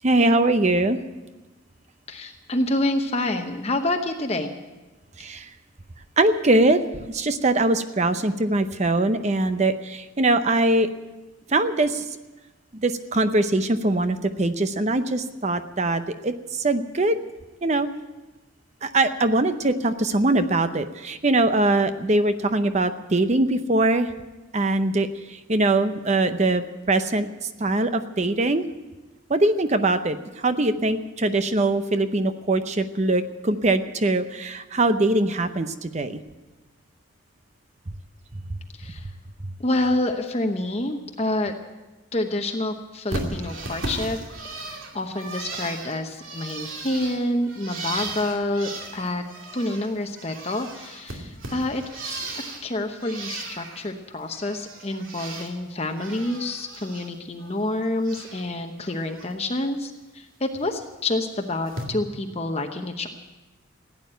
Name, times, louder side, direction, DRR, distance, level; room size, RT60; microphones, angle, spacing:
voice 1, 0.0-1.0 5.2-5.5 6.2-6.8 7.1-10.9 11.5-12.1 12.7-17.2 17.6-17.9 18.8-24.1 24.5-27.3 27.6-28.6 29.3-36.2, right 2 dB, 35° right, 10 dB, 0.7 m, -22 dB
voice 2, 2.1-4.5 38.8-39.1 39.6-41.5 42.1-44.2 44.9-49.2 49.5-52.3 52.6-63.1, left 1 dB, 30° left, 4 dB, 0.9 m, -27 dB
Bird, 43.1-49.9 50.1-52.7 53.0-53.8 54.2-55.5 55.8-57.1 57.4-58.5 58.8-59.3 60.5-60.7 61.7-61.8, right 2 dB, 75° right, 2.6 m, -36 dB
16.0 x 9.4 x 9.0 m, 1.1 s
head